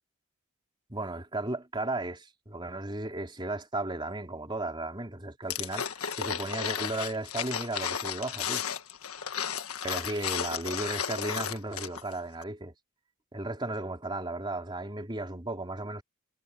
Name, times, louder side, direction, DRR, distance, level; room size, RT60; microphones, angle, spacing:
voice 1, 0.9-8.7 9.8-12.7 13.3-16.0, right 2 dB, 20° right, 3.3 m, -35 dB
sound 1, 5.5-12.1 12.4-12.5, left 8 dB, 80° left, 1.5 m, -33 dB
head